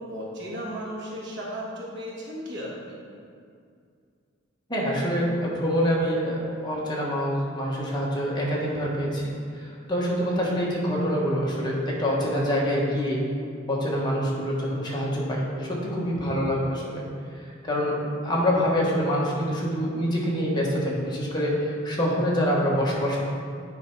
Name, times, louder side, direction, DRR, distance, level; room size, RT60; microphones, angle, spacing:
voice 1, 0.0-3.0, equal, 60° right, -4 dB, 1.5 m, -35 dB
voice 2, 4.7-9.2 9.6-13.2 13.7-17.0 17.6-18.0 18.2-23.2, equal, 20° left, -4 dB, 1.2 m, -25 dB
9.3 x 3.4 x 4.6 m, 2.3 s
head